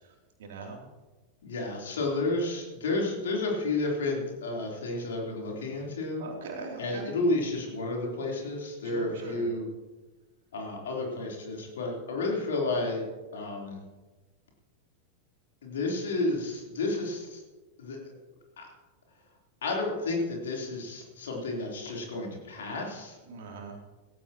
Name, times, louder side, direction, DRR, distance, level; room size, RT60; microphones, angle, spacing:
voice 1, 0.4-0.9 6.2-7.1 8.8-9.5 23.3-23.8, right 4 dB, 60° right, 0 dB, 3.1 m, -40 dB
voice 2, 1.4-6.2 6.8-9.7 10.5-13.0 13.3-13.8 15.6-17.4 17.8-18.1 18.6-18.7 19.6-23.2, left 2 dB, 65° left, -1 dB, 3.8 m, -31 dB
17.0 x 15.5 x 3.1 m, 1.2 s
figure-of-eight pair, 90°, 0 cm